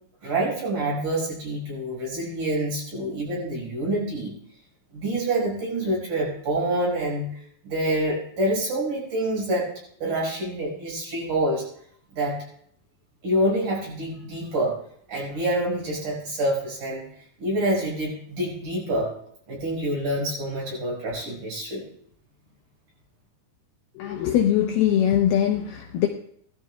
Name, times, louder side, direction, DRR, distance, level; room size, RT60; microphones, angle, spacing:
voice 1, 0.2-4.3 4.9-7.3 7.6-9.7 10.0-11.6 12.1-12.4 13.2-14.7 15.1-17.0 17.4-19.1 19.5-21.8, right 1 dB, 50° right, -4 dB, 6.9 m, -26 dB
voice 2, 24.0-26.1, left 10 dB, 80° left, 3 dB, 2.3 m, -21 dB
19.0 x 13.0 x 2.3 m, 0.64 s
omnidirectional pair, 5.2 m